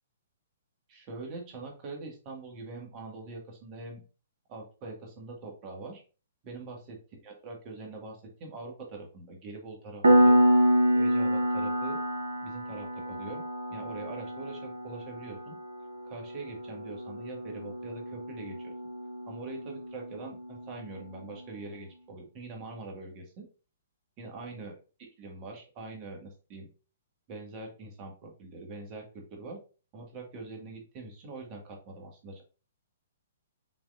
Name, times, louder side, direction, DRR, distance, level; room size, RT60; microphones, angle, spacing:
voice 1, 0.9-4.0 4.5-6.0 6.4-7.0 7.2-10.4 10.9-12.0 12.4-13.4 13.7-15.6 16.0-18.7 19.3-23.5 24.2-24.7 25.2-26.7 27.3-29.6 29.9-32.4, right 3 dB, 35° right, 1 dB, 1.6 m, -43 dB
Piano, 10.0-20.4, right 1 dB, 85° right, 0.8 m, -27 dB
5.9 x 3.5 x 2.4 m, 0.35 s
figure-of-eight pair, 125°, 0 cm